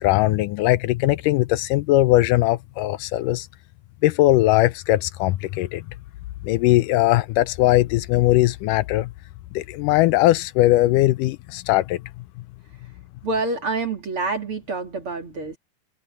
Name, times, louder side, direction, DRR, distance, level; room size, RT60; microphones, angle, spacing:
voice 1, 0.0-3.5 4.0-5.8 6.4-9.1 9.6-12.0, left 16 dB, 80° left, 2.0 m, -19 dB
voice 2, 13.2-15.6, right 3 dB, 40° right, 2.9 m, -27 dB
omnidirectional pair, 3.9 m